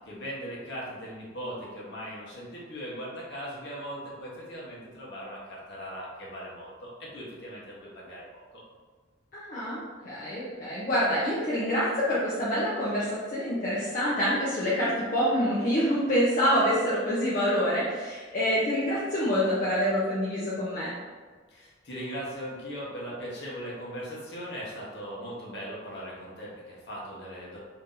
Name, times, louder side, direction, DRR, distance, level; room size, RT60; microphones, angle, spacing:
voice 1, 0.0-8.6 21.5-27.6, equal, 65° left, -5 dB, 1.0 m, -39 dB
voice 2, 9.3-9.8 10.0-20.9, equal, 45° left, -8 dB, 0.6 m, -26 dB
2.8 x 2.6 x 3.7 m, 1.5 s
head